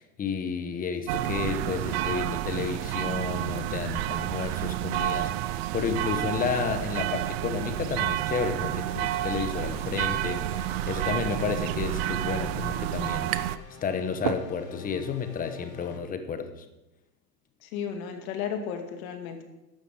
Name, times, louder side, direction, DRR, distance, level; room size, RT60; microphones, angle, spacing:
voice 1, 0.0-13.3 13.8-16.6, left 6 dB, 15° left, 8 dB, 1.1 m, -31 dB
sound 1, 1.1-13.6, right 14 dB, 40° right, 0.4 m, -30 dB
sound 2, 8.7-16.0, left 6 dB, 85° left, 2.6 m, -45 dB
sound 3, 13.3-13.7 14.0-15.0, right 12 dB, 60° right, 0.9 m, -33 dB
voice 2, 17.6-19.4, left 7 dB, 55° left, 5 dB, 2.3 m, -34 dB
12.0 x 7.6 x 6.5 m, 1.0 s
supercardioid pair, 140°, 48 cm